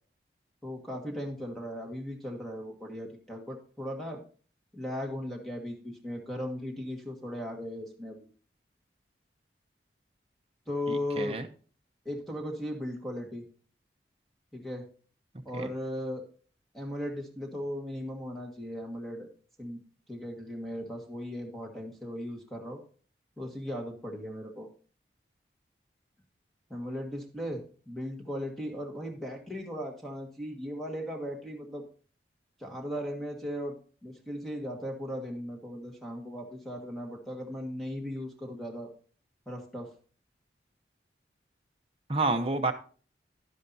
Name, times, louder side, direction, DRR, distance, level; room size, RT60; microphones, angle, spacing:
voice 1, 0.6-4.2 4.7-8.3 10.7-11.4 12.0-13.4 14.5-14.9 15.4-16.2 16.7-19.3 19.6-19.8 20.1-22.8 23.4-24.7 26.7-31.8 32.6-33.8 34.0-38.9 39.4-39.9, equal, ahead, 1 dB, 1.5 m, -37 dB
voice 2, 10.9-11.5 15.5-15.7 42.1-42.7, right 2 dB, 30° right, 4 dB, 0.8 m, -29 dB
11.5 x 10.0 x 2.7 m, 0.40 s
head